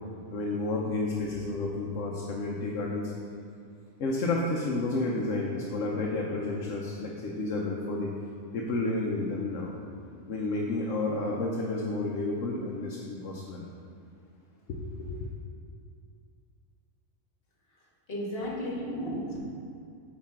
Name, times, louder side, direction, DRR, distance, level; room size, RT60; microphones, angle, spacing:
voice 1, 0.3-3.1 4.0-8.1 8.5-9.7 10.3-13.6 14.7-15.2, left 2 dB, 70° left, -2 dB, 1.1 m, -31 dB
voice 2, 18.1-19.4, equal, 45° left, -4 dB, 1.6 m, -33 dB
8.7 x 4.9 x 3.7 m, 2.4 s
omnidirectional pair, 1.4 m